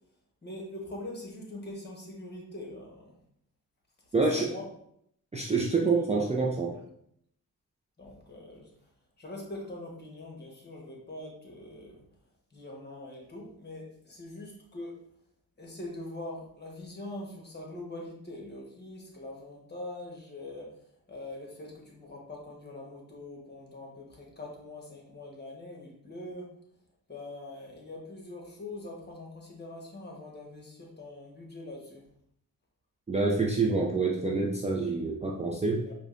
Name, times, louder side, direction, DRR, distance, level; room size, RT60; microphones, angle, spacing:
voice 1, 0.4-3.2 4.1-4.7 5.9-6.3 6.7-6.8 8.0-8.7 9.2-12.0 12.5-15.0 15.6-20.8 21.1-26.5 27.1-32.0 35.8-35.9, left 2 dB, 30° left, -1 dB, 1.2 m, -43 dB
voice 2, 4.1-4.5 5.3-6.8 33.1-35.9, right 3 dB, 20° right, -2 dB, 0.4 m, -27 dB
4.9 x 2.2 x 2.5 m, 0.71 s
cardioid pair, 70°, 36 cm